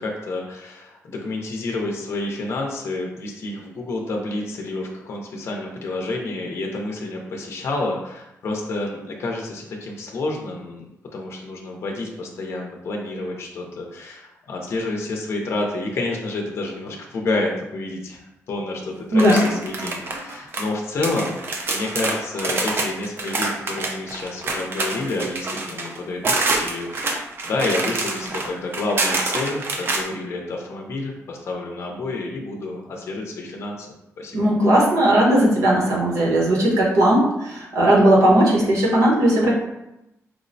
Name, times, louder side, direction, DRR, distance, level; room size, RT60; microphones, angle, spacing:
voice 1, 0.0-10.8 11.1-21.4 21.7-33.9 34.2-34.5, left 2 dB, 55° left, 0 dB, 0.5 m, -29 dB
sound 1, 19.1-20.7 21.0-30.0, right 3 dB, 45° right, 0.4 m, -26 dB
voice 2, 34.3-39.5, right 1 dB, 75° right, -3 dB, 1.0 m, -17 dB
4.6 x 2.0 x 2.6 m, 0.89 s
wide cardioid pair, 155°, 5 cm